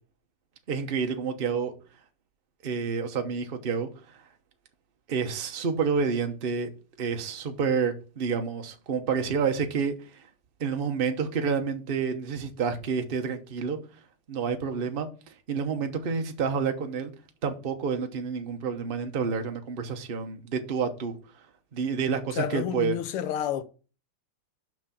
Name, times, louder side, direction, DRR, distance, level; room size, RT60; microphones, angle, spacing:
voice 1, 0.7-1.7 2.6-3.9 5.1-6.7 7.0-9.9 10.6-13.8 14.3-15.1 15.5-17.1 17.4-21.1 21.7-23.0, right 6 dB, 40° right, 0.7 m, -29 dB
voice 2, 22.3-23.6, left 11 dB, 85° left, 1.7 m, -30 dB
6.1 x 5.8 x 5.8 m
omnidirectional pair, 2.4 m